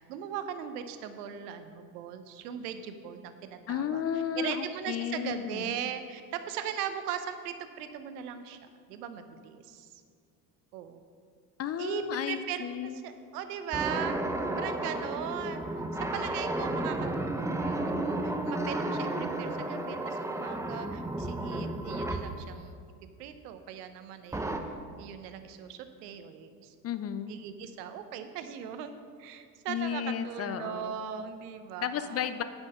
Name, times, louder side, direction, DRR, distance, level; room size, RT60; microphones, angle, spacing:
voice 1, 0.0-4.0 4.4-8.6 8.9-9.9 10.7-11.0 11.8-12.0 12.3-14.2 14.6-15.7 16.0-22.8 23.2-24.6 25.0-26.7 27.3-32.3, right 9 dB, 70° right, 10 dB, 0.9 m, -39 dB
voice 2, 3.7-5.7 11.6-13.0 26.8-27.3 29.7-30.9 31.8-32.4, left 8 dB, 30° left, 11 dB, 0.5 m, -33 dB
sound 1, 13.7-22.4 24.3-24.6, right 1 dB, 5° right, 0.7 m, -32 dB
9.7 x 6.2 x 5.5 m, 2.2 s
hypercardioid pair, 65°, 48 cm